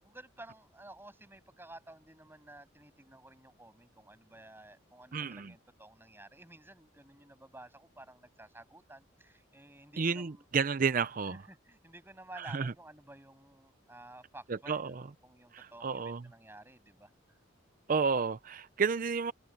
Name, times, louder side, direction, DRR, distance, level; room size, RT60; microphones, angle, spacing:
voice 1, 0.0-10.4 11.3-17.4, right 1 dB, 10° right, 7.2 m, -53 dB
voice 2, 5.1-5.5 10.0-11.4 12.4-12.7 14.7-14.9 15.5-16.2 17.9-19.3, right 5 dB, 45° right, 0.5 m, -31 dB
head